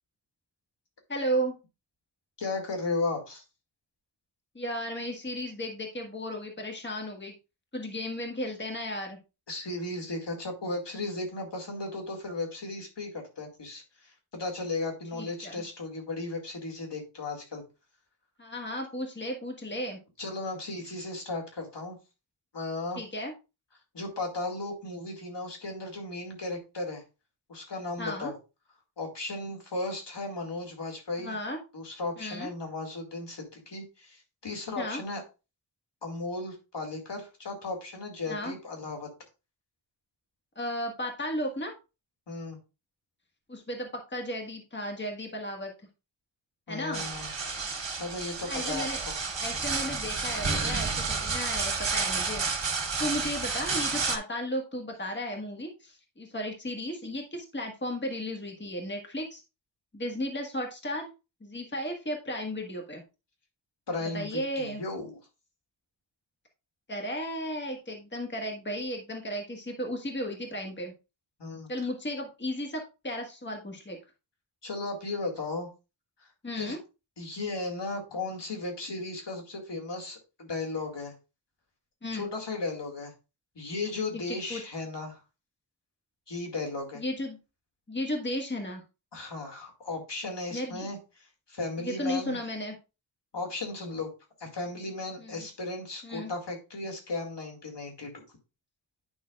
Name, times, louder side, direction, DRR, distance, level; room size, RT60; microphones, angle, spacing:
voice 1, 1.1-1.5 4.5-7.3 7.7-9.2 15.1-15.6 18.4-20.0 22.9-23.3 28.0-28.3 31.2-31.6 32.2-32.5 34.8-35.0 38.3-38.5 40.5-41.7 43.5-45.7 46.7-47.0 48.4-49.0 49.4-59.4 59.9-61.1 61.4-63.0 64.1-64.8 66.9-70.9 71.7-74.0 76.4-76.8 82.0-82.3 84.5-84.6 86.9-87.4 87.9-88.8 90.5-90.9 91.8-92.8 95.2-95.5 96.0-96.3, equal, 25° left, 2 dB, 1.6 m, -34 dB
voice 2, 2.4-3.4 9.5-17.6 20.2-22.0 22.5-23.0 23.9-27.0 27.5-28.3 29.0-31.4 31.7-35.2 36.0-39.1 42.3-42.6 46.7-47.3 48.0-49.1 53.0-53.3 63.9-65.2 71.4-71.7 74.6-75.7 76.2-76.3 76.5-76.8 77.2-81.1 82.1-83.1 83.6-85.2 86.3-87.0 89.1-92.4 93.3-94.1 94.4-98.2, left 3 dB, 65° left, 1 dB, 2.2 m, -35 dB
sound 1, 46.9-54.2, right 4 dB, 70° right, 1.7 m, -31 dB
9.9 x 5.5 x 2.4 m, 0.29 s
wide cardioid pair, 70°, 46 cm